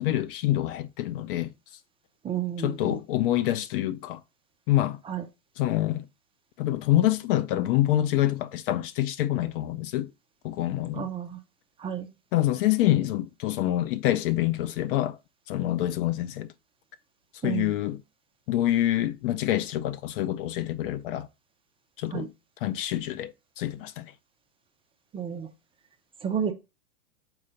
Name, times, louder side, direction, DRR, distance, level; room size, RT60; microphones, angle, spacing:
voice 1, 0.0-1.5 2.6-4.2 4.7-5.0 5.6-6.1 6.6-10.1 10.4-11.1 12.3-15.2 15.5-16.5 17.4-18.0 18.5-21.3 22.0-22.3 22.6-24.1, left 14 dB, 45° left, 0.5 m, -26 dB
voice 2, 2.2-3.0 5.1-5.3 10.9-11.4 11.8-12.1 17.4-17.7 22.1-22.3 25.1-25.5 26.2-26.5, right 8 dB, 15° right, 0.4 m, -31 dB
4.6 x 3.8 x 5.4 m
hypercardioid pair, 115°, 42 cm